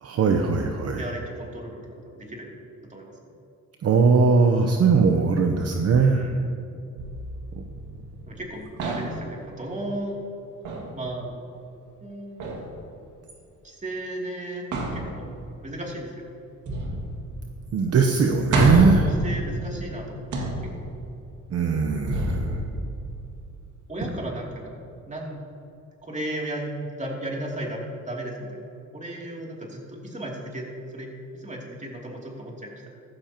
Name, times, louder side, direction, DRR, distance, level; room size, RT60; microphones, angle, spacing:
voice 1, 0.0-1.0 3.8-6.2 17.7-19.1 21.5-22.5, right 5 dB, 55° right, 4 dB, 0.9 m, -20 dB
voice 2, 1.0-2.5 2.8-3.1 6.0-6.4 8.3-10.3 10.9-11.4 12.0-12.6 13.6-14.7 14.9-15.2 15.6-16.2 18.7-20.9 21.9-22.2 23.9-24.7 25.1-25.4 26.0-32.9, right 1 dB, 25° right, -2 dB, 2.9 m, -35 dB
Hitting metal surface with stick, 7.0-8.4 8.8-9.4 10.6-11.0 12.4-12.7 14.7-15.6 16.7-17.7 18.0-18.1 18.5-19.9 20.3-21.1 22.1-23.4 24.0-24.1, right 1 dB, 80° right, 2.2 m, -28 dB
14.5 x 13.0 x 3.0 m, 2.7 s
cardioid pair, 90°, 30 cm